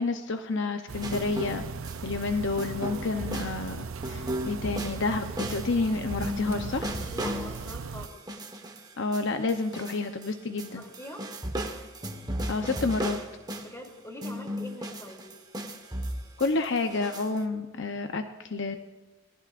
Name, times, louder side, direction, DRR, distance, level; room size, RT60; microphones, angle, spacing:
voice 1, 0.0-1.6 2.0-7.0 9.0-10.8 12.5-13.2 16.4-18.8, left 3 dB, 60° left, 6 dB, 0.8 m, -29 dB
sound 1, 0.9-8.1, right 5 dB, 80° right, 0.5 m, -38 dB
sound 2, 1.0-2.3 2.6-10.3 10.6-13.9 14.2-17.4, equal, 20° right, 1.3 m, -36 dB
voice 2, 7.1-8.2 10.7-11.3 13.6-15.3, left 1 dB, 15° left, 0 dB, 2.9 m, -43 dB
26.0 x 19.0 x 2.5 m, 1.2 s
head